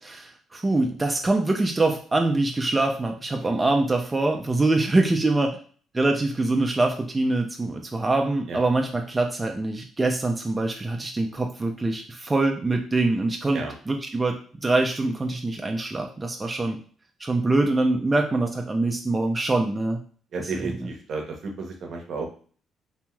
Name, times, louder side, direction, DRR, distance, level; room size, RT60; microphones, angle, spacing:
voice 1, 0.0-5.6 5.9-16.8 17.2-20.0 20.6-20.7, right 2 dB, 20° right, 3 dB, 0.4 m, -24 dB
voice 2, 20.3-22.3, right 4 dB, 65° right, 3 dB, 0.7 m, -32 dB
2.9 x 2.7 x 2.3 m, 0.43 s
cardioid pair, 90°, 0 cm